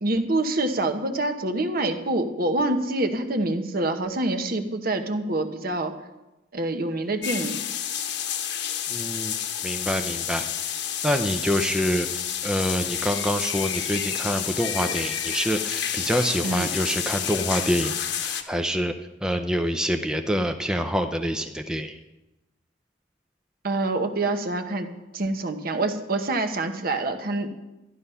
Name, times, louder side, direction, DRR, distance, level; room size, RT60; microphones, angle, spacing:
voice 1, 0.0-5.9 6.5-7.6 16.4-16.7 23.6-24.9 25.1-27.5, right 2 dB, 50° right, 7 dB, 1.1 m, -26 dB
sound 1, 7.2-18.4, left 9 dB, 60° left, 1.1 m, -29 dB
voice 2, 8.9-9.3 9.6-10.4 11.0-18.9 19.2-22.0, equal, 5° right, 5 dB, 0.5 m, -26 dB
12.5 x 11.0 x 5.6 m, 1.0 s
head